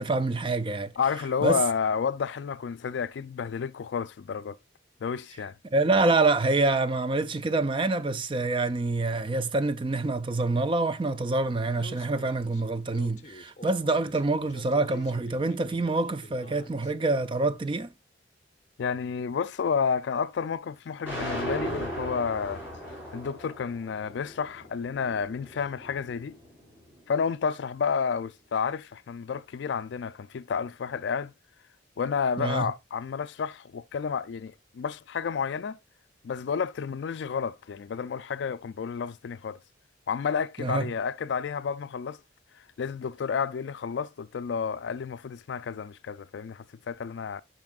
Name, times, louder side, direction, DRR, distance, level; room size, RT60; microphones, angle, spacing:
voice 1, 0.0-0.9 1.4-1.6 5.7-17.9 32.4-32.7 40.6-40.9, right 3 dB, 25° right, 0.4 m, -26 dB
voice 2, 1.0-4.6 5.0-5.6 18.8-22.6 23.1-26.4 27.1-31.3 32.0-35.8 36.2-39.6 40.1-42.2 42.8-47.4, left 6 dB, 70° left, 0.3 m, -30 dB
Speech, 11.7-16.9, left 1 dB, 35° left, 0.8 m, -48 dB
sound 1, 21.0-27.2, equal, 10° right, 5.1 m, -38 dB
10.5 x 5.4 x 2.4 m
head